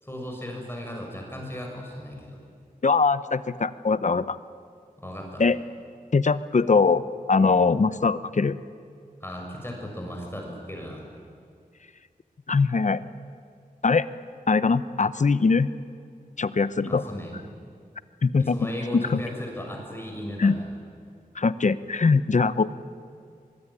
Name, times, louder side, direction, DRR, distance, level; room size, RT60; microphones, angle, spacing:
voice 1, 0.0-2.4 5.0-5.5 9.2-11.1 16.9-17.3 18.4-20.7, left 1 dB, 15° left, 1 dB, 6.6 m, -36 dB
voice 2, 2.8-4.4 5.4-5.6 6.1-8.6 12.5-13.0 13.8-14.1 14.5-15.7 16.4-17.0 18.2-18.6 19.1-19.2 20.4-20.5 21.4-22.7, left 4 dB, 50° left, 15 dB, 0.9 m, -22 dB
24.0 x 23.0 x 9.9 m, 2.3 s
wide cardioid pair, 80°, 15 cm